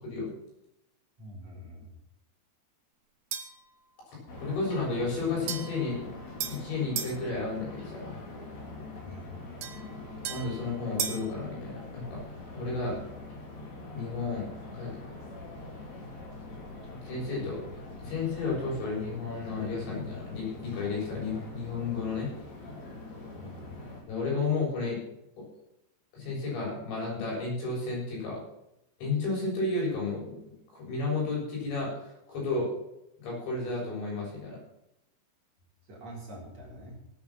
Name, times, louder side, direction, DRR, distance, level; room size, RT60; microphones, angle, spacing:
voice 1, 1.2-1.9 9.0-9.4 23.3-23.7 35.9-37.0, equal, 40° right, -3 dB, 4.4 m, -45 dB
sound 1, 3.3-3.7 5.5-7.2 9.6-11.3, right 8 dB, 60° right, 3.2 m, -37 dB
sound 2, 4.3-24.0, left 2 dB, 45° left, 3.8 m, -43 dB
voice 2, 4.4-6.0 6.5-8.2 10.2-12.2 12.5-13.0 13.9-15.0 16.9-17.6 18.0-22.3 24.1-25.0 25.4-25.5 26.1-28.4 29.0-32.7 33.2-34.6, left 3 dB, 90° left, -3 dB, 9.8 m, -32 dB
17.0 x 9.5 x 6.1 m, 0.82 s
omnidirectional pair, 5.0 m